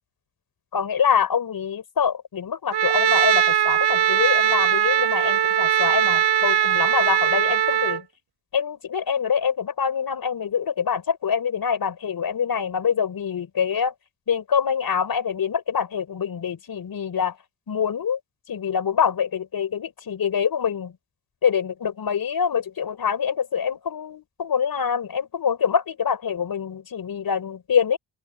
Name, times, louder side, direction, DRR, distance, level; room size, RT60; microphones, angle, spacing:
voice 1, 0.7-8.0 8.5-13.9 14.3-17.3 17.7-18.2 18.5-20.9 21.4-28.0, left 7 dB, 65° left, 5.1 m, -25 dB
Trumpet, 2.7-8.0, right 10 dB, 85° right, 6.4 m, -20 dB
open air
cardioid pair, 95°, 39 cm